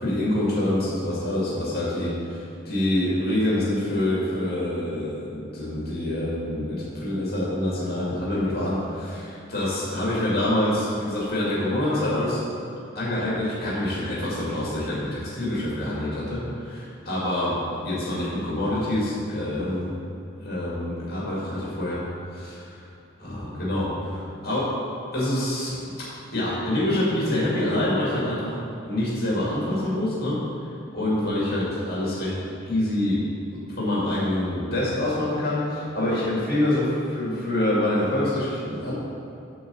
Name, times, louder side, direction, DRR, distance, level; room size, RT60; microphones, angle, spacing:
voice 1, 0.0-2.1 2.7-8.8 9.0-9.2 9.5-12.4 12.9-16.4 17.1-17.5 17.8-19.9 20.4-22.0 22.4-22.5 23.2-23.9 24.4-24.7 25.1-25.9 26.3-28.5 28.9-30.4 30.9-32.3 32.7-33.2 33.8-36.9 37.1-38.9, left 1 dB, 50° left, -8 dB, 2.2 m, -26 dB
11.0 x 3.9 x 6.9 m, 2.6 s
head